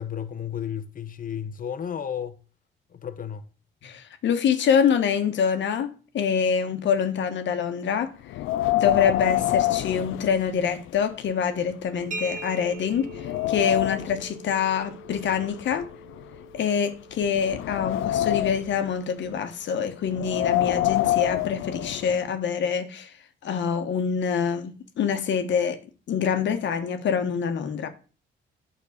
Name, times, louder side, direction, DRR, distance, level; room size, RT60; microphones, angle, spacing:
voice 1, 0.0-2.4 2.9-3.4, left 8 dB, 45° left, 0.9 m, -33 dB
voice 2, 3.8-8.1 8.7-15.9 16.5-23.1 23.4-25.8 26.1-27.9, left 7 dB, 65° left, 1.3 m, -25 dB
Wind, 8.3-10.9 11.3-11.4 12.0-12.1 12.6-14.2 15.1-16.6 17.2-18.8 20.1-22.2, left 14 dB, 85° left, 0.5 m, -27 dB
sound 1, 12.1-19.7, right 2 dB, 40° right, 1.0 m, -43 dB
9.5 x 4.2 x 6.6 m
cardioid pair, 90°, 20 cm